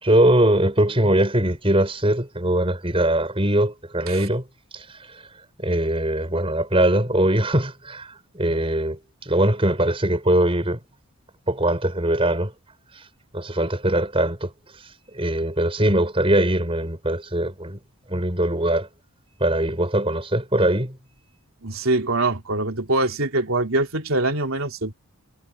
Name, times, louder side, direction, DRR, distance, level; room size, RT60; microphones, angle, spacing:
voice 1, 0.0-4.4 4.7-4.8 5.6-10.8 11.5-12.5 13.3-14.5 15.1-17.8 18.1-18.9 19.4-21.0, right 1 dB, 25° right, 6.1 m, -21 dB
voice 2, 21.6-24.9, right 2 dB, 70° right, 3.0 m, -23 dB
head